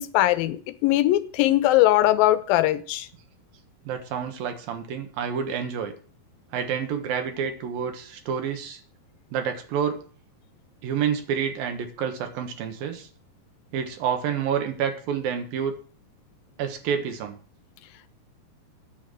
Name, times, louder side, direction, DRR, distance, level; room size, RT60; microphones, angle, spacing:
voice 1, 0.0-3.1, left 15 dB, 80° left, 2.3 m, -20 dB
voice 2, 3.9-5.9 6.5-8.8 9.3-10.0 10.8-13.1 13.7-15.7 16.6-17.4, right 7 dB, 70° right, 3.1 m, -28 dB
9.1 x 7.3 x 7.7 m
omnidirectional pair, 4.4 m